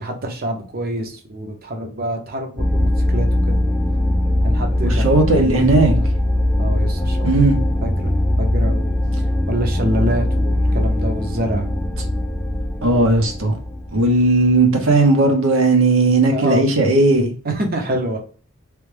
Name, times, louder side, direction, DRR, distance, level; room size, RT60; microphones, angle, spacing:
voice 1, 0.0-3.6 4.4-6.1 6.6-7.3 7.8-8.9 9.5-11.8 16.3-16.7 17.4-18.2, right 1 dB, 45° right, 0.8 m, -26 dB
sound 1, 2.6-14.5, left 1 dB, 5° left, 0.5 m, -20 dB
voice 2, 4.8-5.9 7.2-7.6 12.8-13.5 13.9-17.3, right 2 dB, 75° right, 1.0 m, -16 dB
3.3 x 2.2 x 3.3 m
head